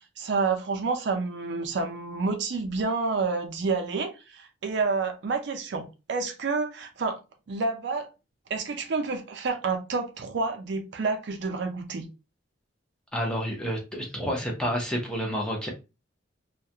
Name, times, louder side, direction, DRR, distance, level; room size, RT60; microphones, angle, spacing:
voice 1, 0.2-7.2 7.5-8.1 8.5-12.0, right 4 dB, 60° right, 5 dB, 0.4 m, -29 dB
voice 2, 13.1-15.7, equal, 5° left, 0 dB, 0.6 m, -29 dB
2.3 x 2.1 x 2.7 m, 0.29 s
head